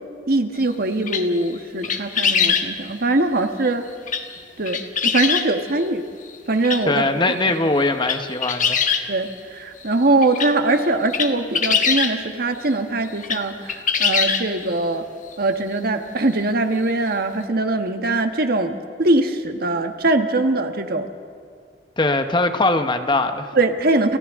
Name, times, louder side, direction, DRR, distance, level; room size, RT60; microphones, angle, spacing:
voice 1, 0.3-3.8 4.6-6.0 6.5-7.0 9.1-15.0 15.4-21.1 23.5-24.2, right 2 dB, 55° right, 6 dB, 1.4 m, -22 dB
sound 1, 1.1-1.5 1.8-2.7 4.1-4.4 4.7-5.5 6.3-6.4 6.6-6.8 7.4-7.5 7.8-9.4 9.8-9.9 10.2-12.1 13.1-13.4 13.7-14.6 15.3-15.4 15.7-15.8 17.1-17.2, left 6 dB, 45° left, 1.4 m, -21 dB
voice 2, 6.9-8.8 22.0-23.5, left 2 dB, 25° left, 7 dB, 1.1 m, -21 dB
29.0 x 29.0 x 3.7 m, 2.2 s
head